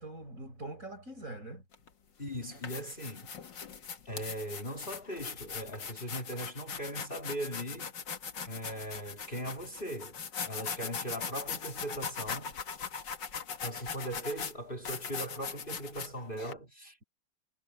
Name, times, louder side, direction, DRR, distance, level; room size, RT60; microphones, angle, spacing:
voice 1, 0.0-1.6, right 2 dB, 45° right, 5.8 m, -43 dB
sound 1, 1.7-1.9 2.4-16.5, left 6 dB, 75° left, 2.4 m, -40 dB
voice 2, 2.2-3.4 4.0-7.9 8.5-12.5 13.6-17.0, right 1 dB, 30° left, 3.0 m, -39 dB
omnidirectional pair, 1.9 m